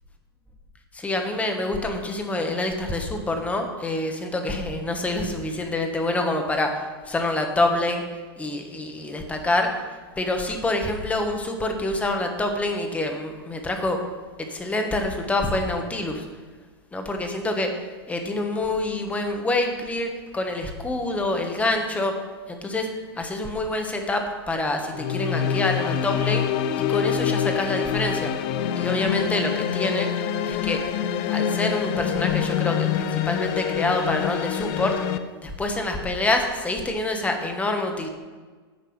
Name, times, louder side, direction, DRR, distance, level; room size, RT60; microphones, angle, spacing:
voice 1, 0.9-8.0 8.4-9.7 10.2-14.0 14.4-16.3 16.9-22.1 22.5-22.9 23.2-26.5 26.8-28.3 28.7-30.1 30.4-30.8 31.3-34.9 35.4-38.1, left 2 dB, 10° left, 4 dB, 1.4 m, -26 dB
sound 1, 24.9-35.2, left 8 dB, 40° left, 0.7 m, -25 dB
10.5 x 5.3 x 7.9 m, 1.4 s
hypercardioid pair, 130°, 14 cm